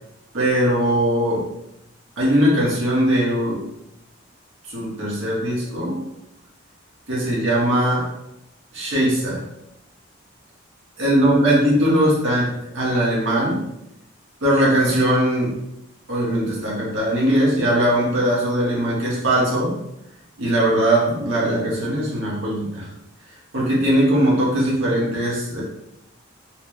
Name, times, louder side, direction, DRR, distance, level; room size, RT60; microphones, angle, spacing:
voice 1, 0.3-1.5 2.2-3.6 4.7-6.0 7.1-8.1 8.7-9.5 11.0-13.6 14.4-15.5 16.1-19.8 20.4-22.9 23.5-25.6, right 1 dB, 70° right, -5 dB, 1.5 m, -20 dB
4.5 x 2.3 x 3.2 m, 0.84 s
head